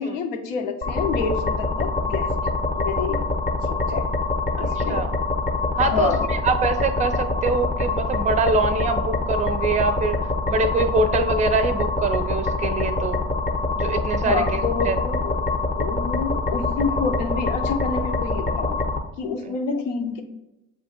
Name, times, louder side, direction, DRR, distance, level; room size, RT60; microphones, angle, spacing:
voice 1, 0.0-2.3 2.7-3.3 3.6-4.1 4.6-5.0 5.8-6.3 14.2-15.4 15.8-18.8 19.2-20.2, left 5 dB, 75° left, 5 dB, 0.7 m, -28 dB
sound 1, 0.8-19.0, left 3 dB, 20° left, 0.7 m, -25 dB
voice 2, 4.6-5.1 5.8-10.2 10.5-13.2 13.8-15.0 19.4-19.5, right 3 dB, 20° right, 10 dB, 0.5 m, -24 dB
7.3 x 2.5 x 2.8 m, 0.91 s
hypercardioid pair, 65°, 38 cm